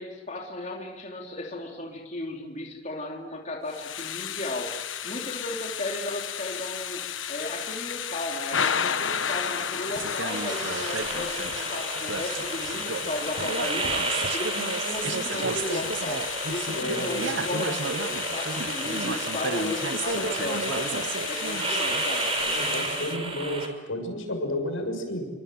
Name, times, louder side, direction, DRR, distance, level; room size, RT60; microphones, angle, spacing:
voice 1, 0.0-4.8 5.0-7.0 7.3-14.0 14.3-21.0 21.3-22.3, left 2 dB, 40° left, 0 dB, 3.5 m, -35 dB
Thunder / Rain, 3.7-23.2, left 8 dB, 65° left, 1.3 m, -33 dB
sound 1, 9.9-22.9, right 4 dB, 65° right, 0.9 m, -34 dB
sound 2, 10.3-23.7, right 2 dB, 30° right, 4.5 m, -32 dB
voice 2, 16.7-17.3 22.4-25.3, left 1 dB, 90° left, 5 dB, 6.6 m, -32 dB
28.0 x 24.5 x 7.8 m, 1.1 s
head